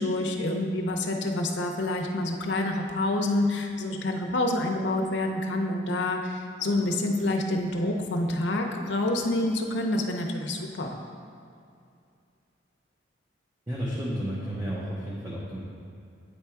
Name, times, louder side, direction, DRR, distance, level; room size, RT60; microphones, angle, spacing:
voice 1, 0.0-11.0, left 1 dB, 65° left, 2 dB, 0.7 m, -27 dB
voice 2, 13.7-15.6, equal, 15° right, -8 dB, 0.9 m, -32 dB
8.6 x 3.5 x 4.5 m, 2.5 s
head